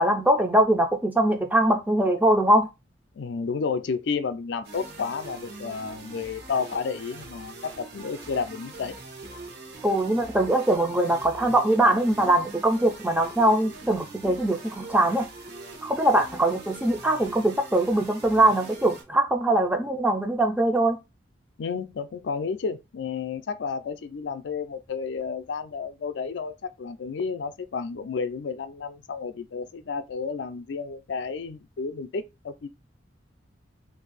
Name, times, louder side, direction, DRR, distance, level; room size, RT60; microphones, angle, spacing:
voice 1, 0.0-2.7 9.8-15.3 15.8-21.0, right 1 dB, 10° right, 0.4 m, -22 dB
voice 2, 3.2-9.0 21.6-32.7, left 5 dB, 70° left, 0.4 m, -31 dB
sound 1, 4.6-19.0, right 3 dB, 60° right, 1.0 m, -43 dB
2.7 x 2.5 x 3.9 m
head